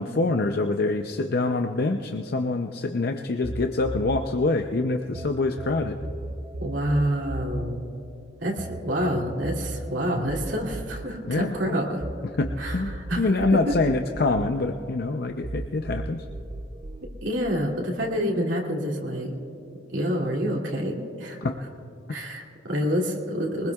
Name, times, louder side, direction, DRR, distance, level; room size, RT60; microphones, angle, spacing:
voice 1, 0.0-6.0 11.3-11.8 12.4-16.2 21.4-21.6 22.1-22.2, left 3 dB, 55° left, 5 dB, 0.6 m, -25 dB
sound 1, 3.4-5.3 5.6-12.1 12.4-15.1 15.4-17.1, right 1 dB, 35° right, 0.6 m, -35 dB
voice 2, 6.6-7.8 8.4-12.1 12.6-13.7 17.0-19.3 19.9-21.4 22.1-23.7, equal, 75° right, -2 dB, 2.6 m, -28 dB
22.5 x 20.5 x 2.4 m, 2.7 s
head